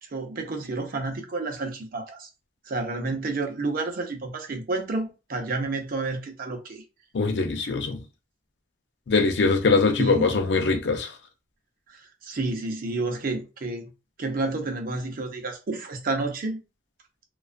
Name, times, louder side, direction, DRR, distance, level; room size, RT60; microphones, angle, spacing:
voice 1, 0.1-2.3 2.6-6.8 10.0-10.3 11.9-13.9 14.2-16.6, right 3 dB, 55° right, 0.5 m, -30 dB
voice 2, 7.1-8.0 9.1-11.1, left 4 dB, 75° left, 0.5 m, -22 dB
2.3 x 2.3 x 2.4 m
head